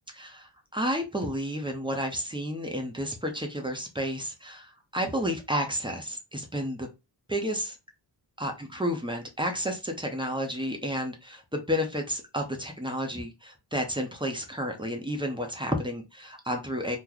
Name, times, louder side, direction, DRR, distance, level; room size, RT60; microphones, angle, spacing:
voice 1, 0.1-6.9 7.3-7.8 8.4-17.0, equal, 10° right, 2 dB, 0.9 m, -31 dB
3.0 x 2.5 x 3.9 m, 0.25 s
cardioid pair, 85°, 44 cm